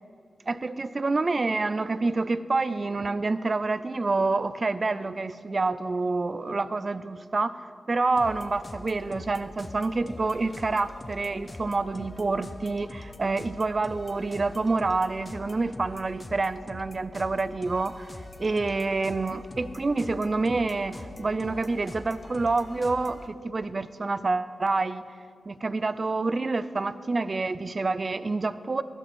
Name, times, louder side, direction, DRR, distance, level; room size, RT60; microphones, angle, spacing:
voice 1, 0.5-7.6 7.9-18.1 18.4-25.0 25.5-28.8, right 3 dB, 40° right, 14 dB, 0.4 m, -27 dB
sound 1, 8.1-23.3, left 2 dB, 30° left, 0.7 m, -43 dB
11.5 x 6.3 x 7.6 m, 2.3 s
cardioid pair, 75°, 0 cm